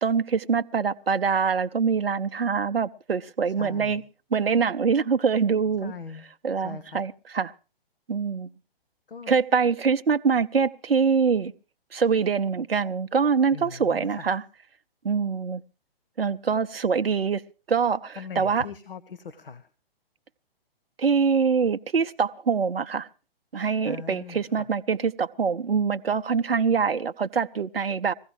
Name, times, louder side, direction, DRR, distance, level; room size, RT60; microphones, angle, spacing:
voice 1, 0.0-4.0 4.3-5.9 6.4-7.5 8.1-8.5 9.3-11.5 11.9-14.4 15.0-15.6 16.2-17.4 17.7-18.7 21.0-23.1 23.5-28.1, right 6 dB, 70° right, 0.7 m, -24 dB
voice 2, 3.6-4.0 5.8-6.2 6.6-7.0 9.1-9.3 13.5-14.3 18.2-19.7 23.8-24.7, left 5 dB, 65° left, 1.3 m, -40 dB
21.5 x 16.0 x 3.1 m
figure-of-eight pair, 130°, 30 cm